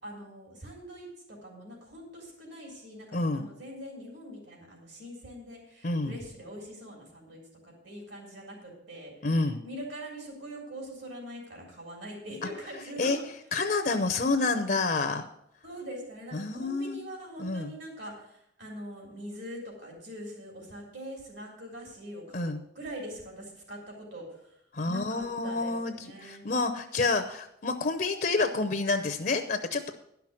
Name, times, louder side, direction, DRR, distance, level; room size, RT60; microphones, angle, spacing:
voice 1, 0.0-13.2 15.6-24.6 24.9-26.5, equal, 65° right, 0 dB, 3.7 m, -43 dB
voice 2, 3.1-3.5 5.8-6.2 9.2-9.6 13.0-13.2 13.5-15.2 16.3-17.0 17.4-17.7 22.3-22.6 24.7-25.9 26.2-29.9, left 3 dB, 45° left, 7 dB, 0.7 m, -28 dB
11.5 x 5.9 x 7.6 m, 0.77 s
head